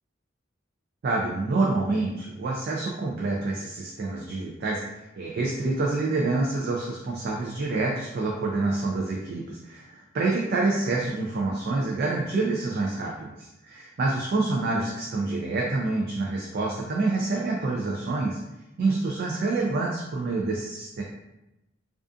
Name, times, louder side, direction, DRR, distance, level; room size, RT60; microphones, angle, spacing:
voice 1, 1.0-18.4 18.8-21.0, right 3 dB, 50° right, -2 dB, 0.3 m, -27 dB
2.4 x 2.3 x 2.4 m, 0.94 s
head